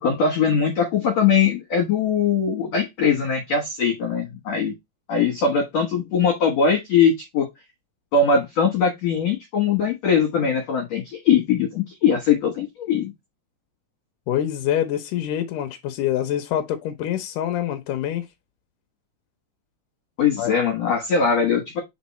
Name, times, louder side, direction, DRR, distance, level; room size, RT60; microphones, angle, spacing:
voice 1, 0.0-4.7 5.1-7.5 8.1-13.1 20.2-21.8, left 6 dB, 65° left, 1.8 m, -21 dB
voice 2, 14.3-18.3 20.4-20.5, left 11 dB, 80° left, 1.8 m, -25 dB
5.3 x 4.5 x 4.2 m
omnidirectional pair, 4.9 m